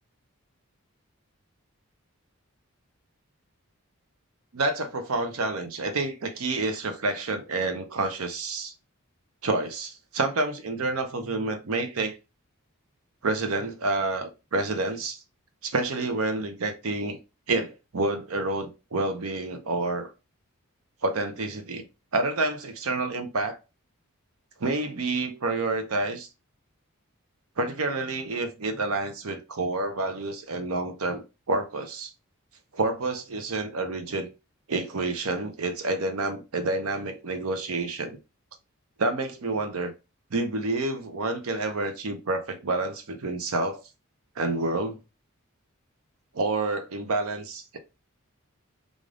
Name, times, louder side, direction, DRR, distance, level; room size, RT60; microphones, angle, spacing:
voice 1, 4.5-8.7 9.4-12.2 13.2-15.2 15.6-17.2 17.5-20.1 21.0-21.8 22.1-23.6 24.6-26.3 27.6-32.1 32.7-34.3 34.7-38.2 39.0-39.9 40.3-43.8 44.4-45.0 46.3-47.8, right 2 dB, 75° right, 0.7 m, -28 dB
3.3 x 2.5 x 3.7 m
head